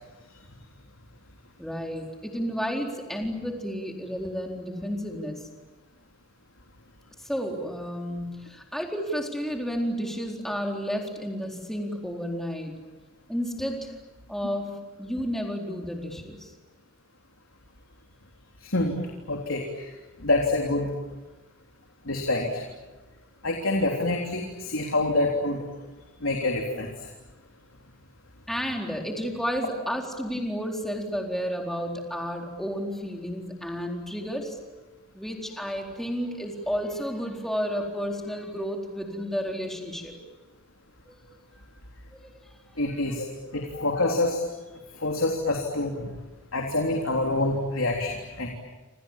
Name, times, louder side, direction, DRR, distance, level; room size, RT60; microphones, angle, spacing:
voice 1, 1.6-5.5 7.2-12.8 13.3-13.9 14.3-16.5 28.5-34.6 35.1-40.1 41.1-41.2 41.5-41.6 42.1-42.5 42.9-43.0, equal, ahead, 1 dB, 4.1 m, -32 dB
voice 2, 18.6-19.0 19.3-19.9 20.2-20.9 22.1-22.6 23.4-25.6 26.2-26.9 42.8-44.4 45.0-46.1 46.5-48.5, left 2 dB, 85° left, 1 dB, 3.6 m, -26 dB
28.5 x 27.5 x 7.4 m, 1.2 s
head